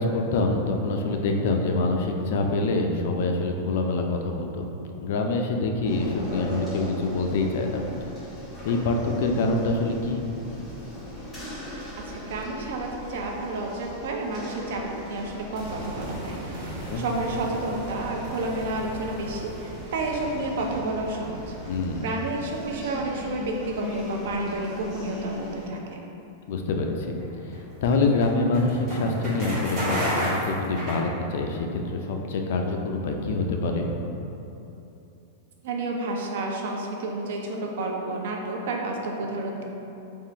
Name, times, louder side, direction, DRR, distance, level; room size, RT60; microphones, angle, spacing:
voice 1, 0.0-4.6 5.0-7.8 8.6-10.2 16.9-17.0 21.7-22.0 26.5-27.2 27.5-33.9, left 3 dB, 60° left, 3 dB, 0.4 m, -25 dB
sound 1, 5.9-25.7, left 1 dB, 15° left, 1.0 m, -39 dB
voice 2, 12.1-14.8 15.1-16.7 17.0-21.4 22.0-26.0 35.6-39.6, right 2 dB, 65° right, 0 dB, 0.6 m, -30 dB
sound 2, 15.5-25.6 25.8-25.9, right 1 dB, 45° right, 1.4 m, -40 dB
sound 3, 27.2-31.6, equal, 20° right, 1.4 m, -30 dB
3.6 x 2.4 x 4.4 m, 2.9 s
supercardioid pair, 165°, 0 cm